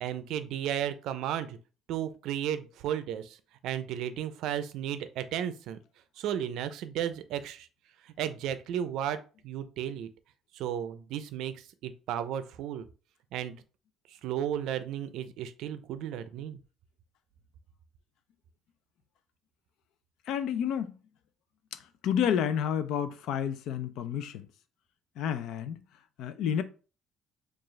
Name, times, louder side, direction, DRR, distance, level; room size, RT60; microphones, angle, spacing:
voice 1, 0.0-1.6 1.9-3.4 3.6-5.8 6.2-7.7 8.2-9.2 9.4-10.1 10.5-11.5 11.8-12.9 13.3-13.5 14.2-16.6, right 10 dB, 75° right, 0.4 m, -34 dB
voice 2, 20.3-21.0 21.7-24.5 25.2-25.8 26.2-26.6, left 8 dB, 75° left, 0.4 m, -30 dB
4.6 x 2.4 x 3.1 m
cardioid pair, 135°, 0 cm